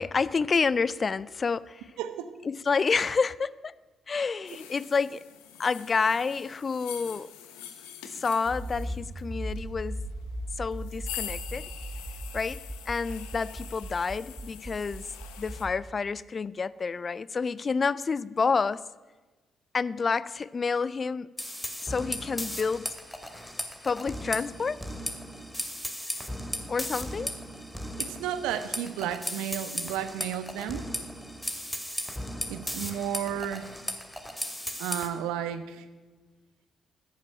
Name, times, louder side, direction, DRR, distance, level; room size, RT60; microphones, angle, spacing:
voice 1, 0.0-1.9 2.4-3.7 4.1-5.2 5.6-7.3 8.1-10.0 10.6-11.7 12.3-15.0 15.4-18.8 19.7-21.3 21.8-22.9 23.8-24.8 26.7-27.3, left 5 dB, 40° left, 0.5 m, -29 dB
voice 2, 2.0-2.3 28.0-30.8 32.5-33.7 34.8-35.8, right 10 dB, 80° right, 1.0 m, -33 dB
sound 1, 4.5-15.7, left 9 dB, 80° left, 1.1 m, -44 dB
Accelerating revving vroom, 8.4-15.7, right 1 dB, 20° right, 2.3 m, -38 dB
sound 2, 21.4-35.1, equal, 10° left, 2.5 m, -36 dB
14.5 x 7.5 x 9.9 m
hypercardioid pair, 45°, 0 cm